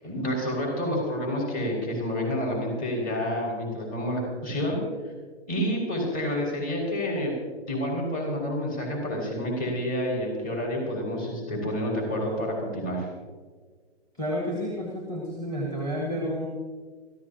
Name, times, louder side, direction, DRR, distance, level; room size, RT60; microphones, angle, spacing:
voice 1, 0.0-4.8 5.5-7.3 7.7-13.1, equal, 30° left, 0 dB, 6.0 m, -29 dB
voice 2, 14.1-16.5, equal, 10° left, -1 dB, 1.8 m, -30 dB
25.0 x 14.5 x 3.0 m, 1.5 s
hypercardioid pair, 160°, 33 cm